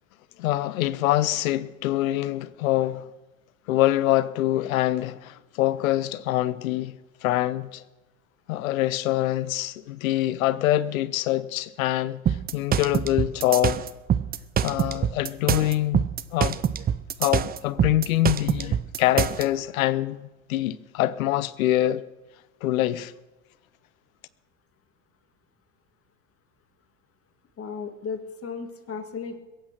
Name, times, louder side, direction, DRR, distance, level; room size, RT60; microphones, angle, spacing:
voice 1, 0.4-3.1 3.7-7.8 8.5-13.8 14.6-16.6 17.2-22.0 22.6-23.1, left 15 dB, 75° left, 0.8 m, -25 dB
sound 1, 12.3-19.4, right 9 dB, 25° right, 0.6 m, -25 dB
voice 2, 27.6-29.4, left 5 dB, 35° left, 2.2 m, -35 dB
22.0 x 8.7 x 5.9 m
hypercardioid pair, 90°, 41 cm